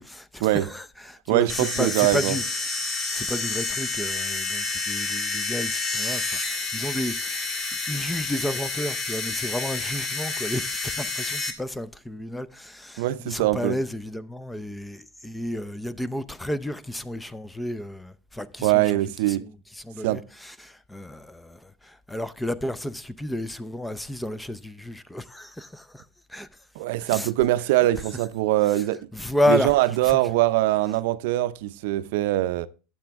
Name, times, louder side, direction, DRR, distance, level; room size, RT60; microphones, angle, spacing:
voice 1, 0.0-2.4 2.8-7.6 7.9-18.8 19.3-19.5 19.8-26.0 26.3-26.5 27.0-27.3 29.1-29.7 30.0-30.2, left 1 dB, 5° left, 0.6 m, -31 dB
voice 2, 1.3-2.4 13.0-13.8 18.6-19.5 20.0-20.2 26.8-29.1 29.5-32.7, right 16 dB, 75° right, 0.5 m, -22 dB
sound 1, 1.5-11.5, left 3 dB, 30° left, 1.8 m, -29 dB
11.5 x 7.8 x 3.5 m
supercardioid pair, 110°, 0 cm